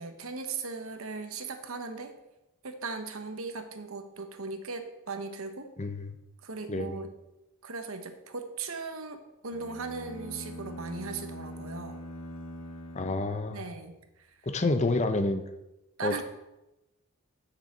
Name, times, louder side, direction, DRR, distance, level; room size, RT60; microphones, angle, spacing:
voice 1, 0.0-2.1 2.6-5.7 6.4-7.1 7.6-12.0 13.5-13.9 16.0-16.2, right 4 dB, 70° right, 7 dB, 1.1 m, -38 dB
voice 2, 5.8-6.1 6.7-7.0 12.9-13.6 14.5-15.4 16.0-16.2, left 2 dB, 30° left, 9 dB, 0.7 m, -28 dB
sound 1, 9.5-13.9, equal, 65° left, 1.7 m, -43 dB
6.8 x 6.3 x 7.4 m, 0.94 s
head